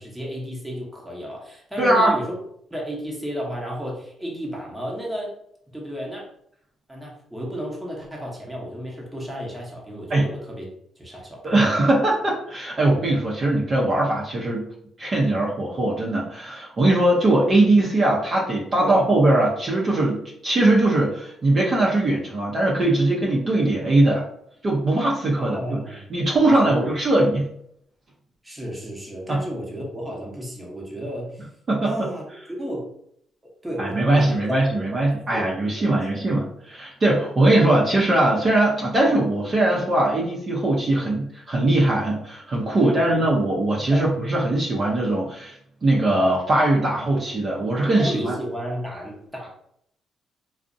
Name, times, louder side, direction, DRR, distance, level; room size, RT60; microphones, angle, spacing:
voice 1, 0.0-2.3 2.7-5.3 5.7-6.3 6.9-10.7 11.0-11.5 18.8-19.1 25.4-26.0 26.4-26.9 28.4-31.5 31.8-32.2 32.5-32.9 33.6-36.2 42.8-43.3 43.9-44.1 47.9-49.5, equal, 10° right, -2 dB, 0.8 m, -32 dB
voice 2, 1.8-2.2 10.1-10.3 11.4-14.7 15.0-24.2 24.6-25.8 26.1-27.5 29.3-29.4 31.7-31.9 33.8-45.5 45.8-48.4, right 2 dB, 40° right, -4 dB, 0.5 m, -20 dB
2.5 x 2.0 x 2.5 m, 0.70 s
cardioid pair, 90°, 0 cm